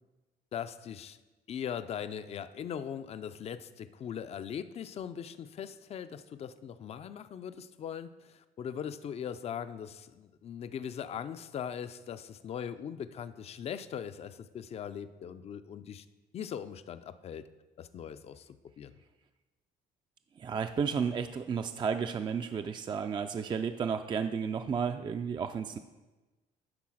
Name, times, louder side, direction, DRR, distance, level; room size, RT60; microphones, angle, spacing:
voice 1, 0.5-1.2 1.5-16.1 16.3-17.5 17.8-19.0, left 8 dB, 40° left, 12 dB, 0.4 m, -40 dB
voice 2, 20.4-25.8, right 6 dB, 30° right, 8 dB, 0.4 m, -32 dB
9.6 x 3.8 x 6.3 m, 1.2 s
cardioid pair, 110°, 17 cm